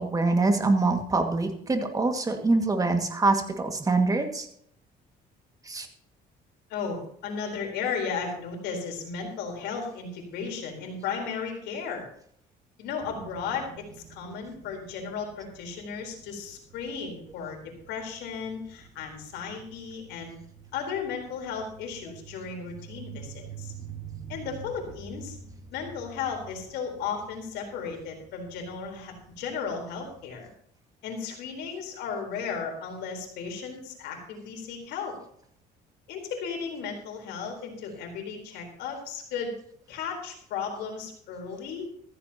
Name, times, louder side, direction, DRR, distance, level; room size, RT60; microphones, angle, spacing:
voice 1, 0.0-4.5 5.6-5.9, right 3 dB, 20° right, 4 dB, 2.2 m, -24 dB
voice 2, 6.7-12.1 12.8-17.6 17.9-20.4 20.7-23.7 24.3-25.4 25.7-30.5 31.0-35.1 36.1-39.5 39.9-41.9, left 6 dB, 85° left, 2 dB, 4.3 m, -35 dB
sound 1, 13.0-30.5, right 6 dB, 40° right, 5.2 m, -48 dB
15.0 x 14.5 x 3.0 m, 0.67 s
cardioid pair, 110°, 17 cm